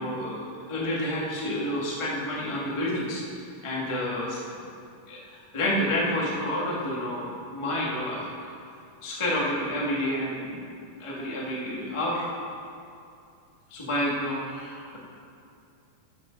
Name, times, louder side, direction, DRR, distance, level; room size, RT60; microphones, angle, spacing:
voice 1, 0.0-3.2 3.6-4.6 5.1-8.4 9.0-10.7 11.0-12.2 13.7-15.0, left 1 dB, 55° left, -5 dB, 0.3 m, -29 dB
13.5 x 6.6 x 5.2 m, 2.5 s
omnidirectional pair, 4.2 m